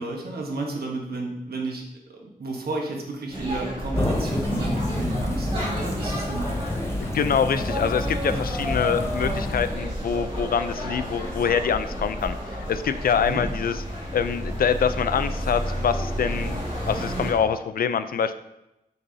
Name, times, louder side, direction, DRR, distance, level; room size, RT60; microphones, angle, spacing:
voice 1, 0.0-1.8 2.1-6.6 13.1-13.5, right 3 dB, 85° right, 0 dB, 1.2 m, -32 dB
sound 1, 3.3-17.3, equal, 35° right, 1.7 m, -31 dB
sound 2, 3.9-9.8, left 1 dB, 15° left, 0.7 m, -29 dB
voice 2, 7.0-13.8 14.1-16.6 16.9-18.3, left 7 dB, 70° left, 11 dB, 0.4 m, -25 dB
6.6 x 5.4 x 2.7 m, 0.90 s
wide cardioid pair, 130°, 16 cm